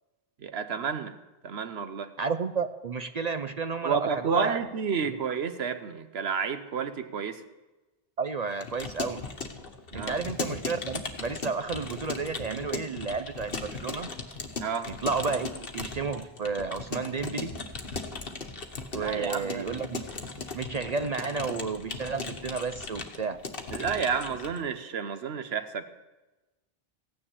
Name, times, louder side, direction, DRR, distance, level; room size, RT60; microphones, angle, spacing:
voice 1, 0.4-1.1 1.4-2.1 3.8-7.4 9.9-10.2 14.6-14.9 18.9-19.9 23.7-25.8, right 6 dB, 85° right, 10 dB, 1.1 m, -30 dB
voice 2, 2.2-4.6 5.0-5.2 8.2-9.2 9.9-14.1 15.0-17.5 18.9-20.0 20.5-23.4, right 4 dB, 50° right, 10 dB, 0.6 m, -31 dB
Keyboard (musical) / Computer keyboard, 8.5-24.6, left 4 dB, 65° left, 1.5 m, -37 dB
16.0 x 9.9 x 7.0 m, 1.1 s
omnidirectional pair, 1.0 m